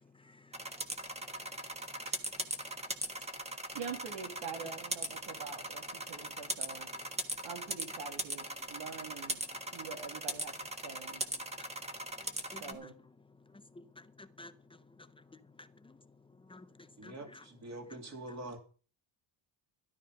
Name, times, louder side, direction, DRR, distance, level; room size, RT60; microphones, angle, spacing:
voice 1, 0.2-0.5 12.5-12.9 13.7-15.2 15.6-16.0 16.5-17.4 18.3-18.4, left 2 dB, 10° left, 0.6 m, -53 dB
sound 1, 0.5-12.7, right 1 dB, 15° right, 1.3 m, -39 dB
voice 2, 3.7-6.9 7.4-9.4 9.7-10.5 10.8-11.2 12.6-12.9, right 6 dB, 90° right, 2.5 m, -45 dB
voice 3, 17.0-18.6, right 2 dB, 35° right, 2.8 m, -45 dB
13.0 x 12.0 x 5.1 m
cardioid pair, 165°, 45 cm